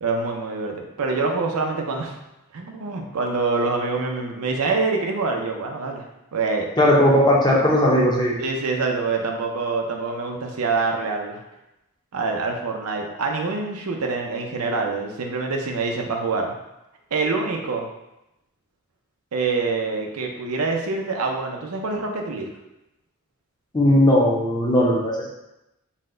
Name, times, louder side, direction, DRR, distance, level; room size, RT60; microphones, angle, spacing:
voice 1, 0.0-2.1 2.5-6.0 6.3-6.7 8.4-11.4 12.1-16.5 17.1-17.9 19.3-22.5, right 3 dB, 85° right, 2 dB, 0.6 m, -25 dB
voice 2, 6.8-8.4 23.7-25.3, left 1 dB, 20° left, -3 dB, 0.6 m, -17 dB
4.1 x 2.2 x 3.7 m, 0.91 s
head